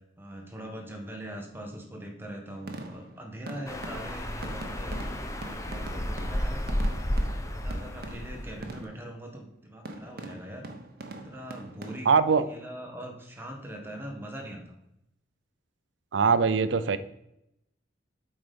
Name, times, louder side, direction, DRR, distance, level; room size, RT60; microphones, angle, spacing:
voice 1, 0.2-5.0 5.7-6.8 7.5-10.7 11.1-12.2 12.5-14.8, right 1 dB, 10° right, 2 dB, 1.1 m, -42 dB
sound 1, 2.5-9.2 9.9-12.1, right 2 dB, 50° right, 0.9 m, -43 dB
sound 2, 3.7-8.8, equal, 15° left, 0.6 m, -32 dB
voice 2, 12.1-12.5 16.1-17.0, right 5 dB, 70° right, 13 dB, 0.5 m, -22 dB
8.0 x 4.0 x 5.1 m, 0.82 s
head